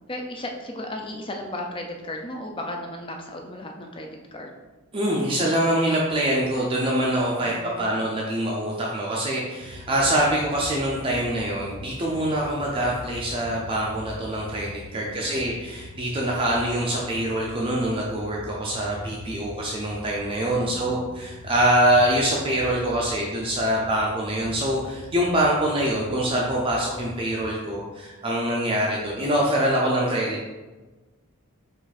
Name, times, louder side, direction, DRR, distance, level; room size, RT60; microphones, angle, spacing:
voice 1, 0.1-4.5 7.4-8.0 15.0-15.6 20.5-21.1, left 1 dB, 25° left, 2 dB, 0.5 m, -35 dB
voice 2, 4.9-30.5, right 1 dB, 25° right, -3 dB, 0.5 m, -24 dB
sound 1, 9.6-27.5, left 2 dB, 70° left, 0.5 m, -43 dB
4.7 x 2.6 x 4.1 m, 1.2 s
head